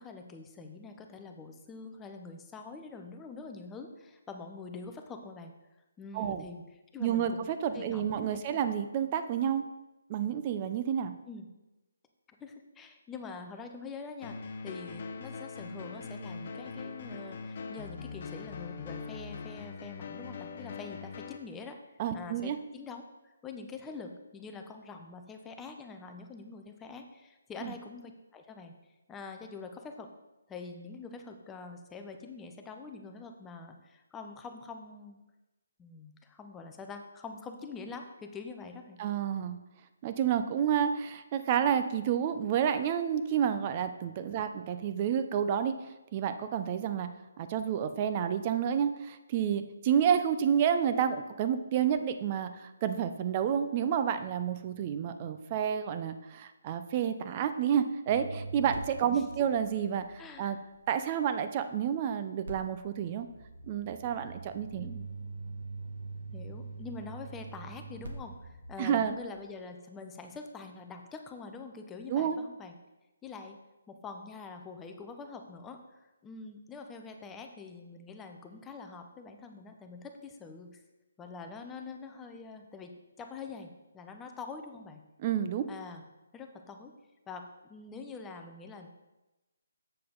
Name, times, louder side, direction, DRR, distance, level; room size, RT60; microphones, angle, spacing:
voice 1, 0.0-5.5 6.0-8.6 11.3-11.5 12.4-21.8 22.1-28.7 29.1-30.1 30.5-35.2 35.8-39.0 44.3-44.5 59.1-59.3 60.2-60.6 64.8-65.1 66.3-72.7 73.2-73.6 73.9-80.8 81.2-85.0 85.7-86.0 86.3-86.9 87.3-88.9, left 4 dB, 10° left, 5 dB, 0.7 m, -45 dB
voice 2, 6.1-6.5 7.0-9.7 10.1-11.1 22.0-22.6 27.6-27.7 39.0-39.6 40.0-45.8 46.1-47.1 47.4-60.6 60.9-63.3 63.7-64.9 68.8-69.1 72.1-72.4 85.2-85.7, right 8 dB, 30° right, 10 dB, 0.6 m, -30 dB
sound 1, 14.2-21.4, left 4 dB, 45° left, 0.7 m, -42 dB
sound 2, 58.1-61.2 62.4-69.4, right 3 dB, 70° right, 1.5 m, -44 dB
7.7 x 6.7 x 3.8 m, 1.0 s
hypercardioid pair, 160°, 0 cm